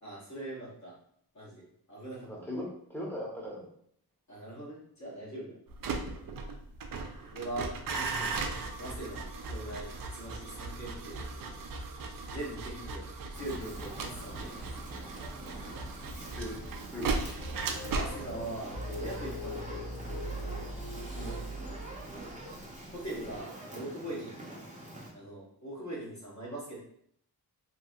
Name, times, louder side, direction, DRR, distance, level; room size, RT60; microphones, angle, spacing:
voice 1, 0.0-0.9 1.3-2.6 4.3-5.6 7.3-8.4 8.8-11.6 12.3-13.0 13.3-14.6 17.8-20.0 21.2-21.4 22.9-24.5 25.1-26.9, right 1 dB, 50° left, -6 dB, 1.2 m, -41 dB
voice 2, 2.5-3.7 12.8-12.9 16.3-16.6 16.9-17.2 21.1-21.4, left 1 dB, 5° left, -4 dB, 0.9 m, -39 dB
sound 1, 5.7-22.7 22.9-23.4, right 3 dB, 60° right, 0.5 m, -38 dB
Fire, 13.3-25.1, right 1 dB, 20° right, 0.7 m, -46 dB
sound 2, 17.4-22.4, equal, 80° left, 0.7 m, -41 dB
2.9 x 2.7 x 2.4 m, 0.66 s
wide cardioid pair, 110°, 38 cm